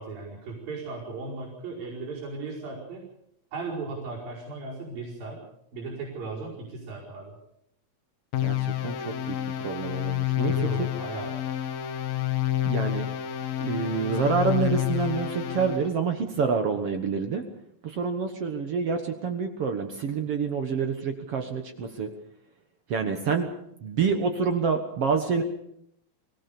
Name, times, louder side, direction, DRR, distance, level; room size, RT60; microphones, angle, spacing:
voice 1, 0.0-3.1 3.5-5.4 5.7-7.4 10.4-11.4, right 3 dB, 85° right, -6 dB, 6.8 m, -36 dB
sound 1, 8.3-15.9, left 13 dB, 80° left, 3.0 m, -29 dB
voice 2, 8.4-10.9 12.6-13.1 13.6-17.4 17.8-22.1 22.9-23.5 23.8-25.4, right 5 dB, 55° right, 6 dB, 1.9 m, -27 dB
23.5 x 18.0 x 7.0 m, 0.74 s
omnidirectional pair, 4.0 m